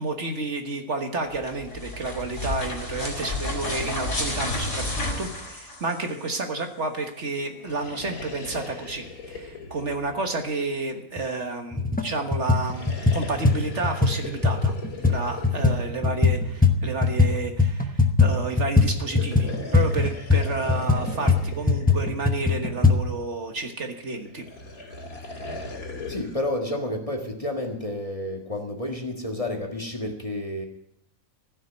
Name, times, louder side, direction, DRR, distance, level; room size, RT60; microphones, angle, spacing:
voice 1, 0.0-14.8 15.1-24.4, right 3 dB, 50° right, 4 dB, 1.6 m, -31 dB
Chain mixdown, 1.3-6.3, left 1 dB, 50° left, 4.1 m, -31 dB
sound 1, 7.5-11.1 12.4-16.8 18.9-22.9 24.2-26.5, left 3 dB, 70° left, 2.8 m, -39 dB
sound 2, 11.2-11.3 11.7-12.1 12.3-17.3 17.6-23.0, left 4 dB, 10° left, 0.6 m, -21 dB
voice 2, 26.1-30.7, left 1 dB, 25° left, 2 dB, 1.6 m, -30 dB
15.5 x 6.5 x 9.4 m, 0.79 s
omnidirectional pair, 1.6 m